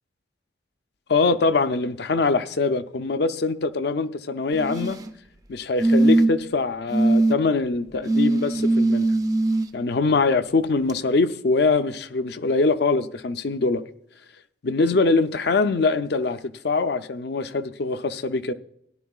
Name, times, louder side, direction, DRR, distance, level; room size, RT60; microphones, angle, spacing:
voice 1, 1.1-5.0 5.5-9.0 9.7-13.8 14.6-18.5, left 3 dB, 60° left, 0.5 m, -23 dB
sound 1, 4.5-5.1 5.8-6.5 6.9-7.3 8.1-9.7 10.9-11.0, right 2 dB, 20° right, 0.5 m, -20 dB
17.0 x 11.0 x 2.4 m
head